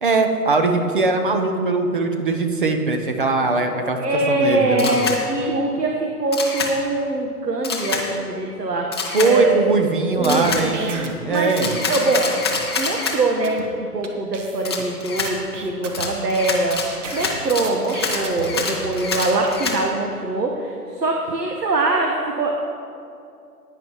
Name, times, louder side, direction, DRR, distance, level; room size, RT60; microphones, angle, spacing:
voice 1, 0.0-4.0 4.3-5.1 9.1-11.7, right 3 dB, 35° right, 5 dB, 0.7 m, -20 dB
voice 2, 4.0-9.5 10.2-10.9 11.3-11.5 11.9-12.3 12.8-22.6, right 2 dB, 85° right, 1 dB, 1.4 m, -23 dB
Camera, 4.8-5.2 6.3-6.7 7.6-8.0 8.9-9.3 10.2-10.6 11.6-13.2 14.6-15.3 15.9-19.8, left 4 dB, 15° left, 0.6 m, -26 dB
sound 1, 10.1-12.2 12.5-12.7 13.1-13.2 13.4-13.6 14.0-14.1 14.3-14.8 15.2-16.5 16.7-18.4 18.8-19.5, right 4 dB, 50° right, 1.4 m, -35 dB
16.5 x 9.6 x 3.1 m, 2.5 s
hypercardioid pair, 150°, 48 cm